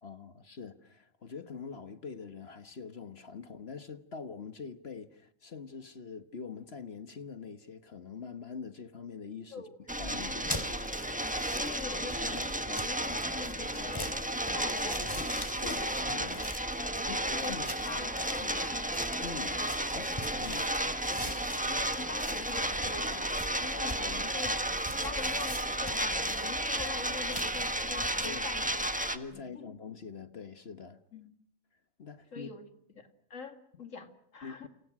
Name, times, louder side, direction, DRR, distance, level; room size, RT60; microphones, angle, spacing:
voice 1, 0.0-9.6 10.0-10.7 15.6-15.8 16.1-16.4 17.1-17.7 19.2-20.7 23.8-24.0 28.2-28.4 29.1-31.0 32.0-32.5 34.4-34.7, left 5 dB, 55° left, 1.5 m, -44 dB
sound 1, 9.8-25.5, right 8 dB, 35° left, 5.9 m, -58 dB
sound 2, 9.9-29.2, right 1 dB, 5° right, 1.5 m, -33 dB
sound 3, 10.2-28.3, left 1 dB, 15° left, 3.6 m, -44 dB
voice 2, 11.5-18.9 21.7-24.6 25.0-28.9 29.3-29.7 31.1-31.3 32.3-32.7 33.0-34.7, left 5 dB, 75° left, 3.0 m, -44 dB
30.0 x 28.5 x 6.1 m
omnidirectional pair, 1.3 m